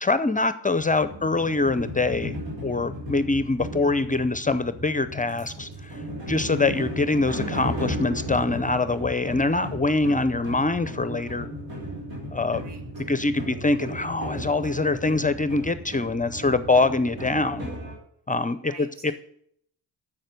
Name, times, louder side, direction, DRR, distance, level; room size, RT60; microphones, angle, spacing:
voice 1, 0.0-5.9 6.3-11.5 12.3-12.6 13.1-17.7 18.3-18.7 19.0-19.1, left 3 dB, 20° left, 13 dB, 0.5 m, -24 dB
sound 1, 0.8-17.9, equal, 90° right, 3.4 m, -35 dB
voice 2, 12.6-13.1 18.7-19.1, right 4 dB, 70° right, 3 dB, 2.2 m, -47 dB
7.4 x 6.6 x 7.9 m, 0.68 s
supercardioid pair, 50°, 43 cm